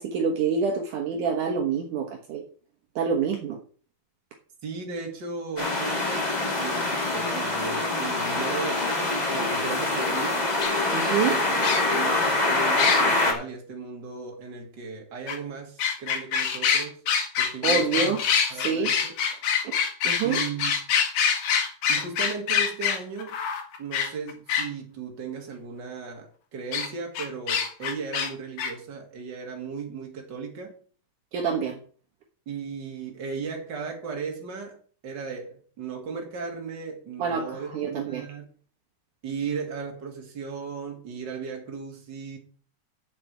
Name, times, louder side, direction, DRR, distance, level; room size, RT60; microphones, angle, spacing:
voice 1, 0.0-2.4 3.0-3.6 10.9-11.4 17.6-18.2 18.5-18.9 19.6-19.8 20.0-20.4 31.3-31.8 37.2-38.2, right 6 dB, 70° right, 2 dB, 2.6 m, -27 dB
voice 2, 4.6-8.9 9.3-10.5 11.2-17.0 17.4-18.2 18.5-19.1 20.2-20.7 21.9-23.4 23.8-30.7 32.5-34.8 35.0-38.5 39.2-42.4, right 5 dB, 35° right, 1 dB, 2.9 m, -36 dB
sound 1, 5.6-13.3, left 2 dB, 15° left, 1.9 m, -25 dB
sound 2, 10.6-10.7 11.6-12.0 12.8-13.0 15.3-15.4 15.8-24.7 26.7-26.9 27.2-28.3 28.6-28.7, left 7 dB, 85° left, 3.4 m, -25 dB
7.4 x 7.4 x 8.1 m, 0.43 s
omnidirectional pair, 4.0 m